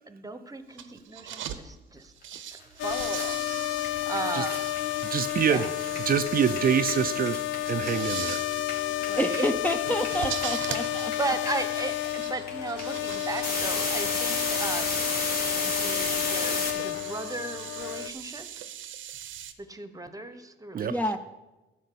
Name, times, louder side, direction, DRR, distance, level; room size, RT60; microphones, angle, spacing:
voice 1, 0.1-2.1 2.4-4.7 5.5-5.7 9.1-9.5 10.5-10.8 11.2-15.1 15.6-18.5 19.6-21.0, right 3 dB, 15° right, 10 dB, 1.0 m, -36 dB
sound 1, 0.7-1.6 2.0-19.5, right 10 dB, 80° right, 0.8 m, -41 dB
sound 2, 2.5-2.6 2.8-8.3 8.6-16.7, left 2 dB, 50° left, 2.8 m, -32 dB
sound 3, 2.8-18.1, left 14 dB, 75° left, 0.5 m, -31 dB
voice 2, 5.1-5.6 6.1-7.4 7.7-8.4 20.7-20.9, right 8 dB, 45° right, 8 dB, 0.5 m, -25 dB
voice 3, 9.1-11.1 20.9-21.2, equal, 5° left, 7 dB, 0.6 m, -28 dB
12.0 x 5.2 x 8.4 m, 1.1 s
cardioid pair, 90°, 20 cm